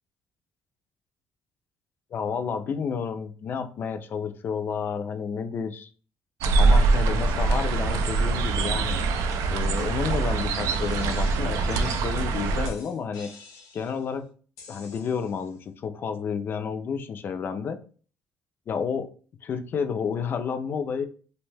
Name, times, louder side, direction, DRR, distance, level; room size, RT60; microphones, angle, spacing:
voice 1, 2.1-5.9 6.6-9.0 9.5-13.3 13.7-14.2 14.7-17.8 18.7-19.1 19.4-21.1, left 6 dB, 45° left, 8 dB, 0.4 m, -30 dB
sound 1, 6.4-12.7, right 3 dB, 80° right, 0.3 m, -23 dB
sound 2, 8.8-9.0 9.3-9.4 9.8-9.9 10.3-11.4 11.7-12.2 12.6-14.0 14.6-15.5, left 3 dB, 90° left, 0.6 m, -44 dB
2.6 x 2.1 x 3.2 m, 0.40 s
cardioid pair, 120°, 5 cm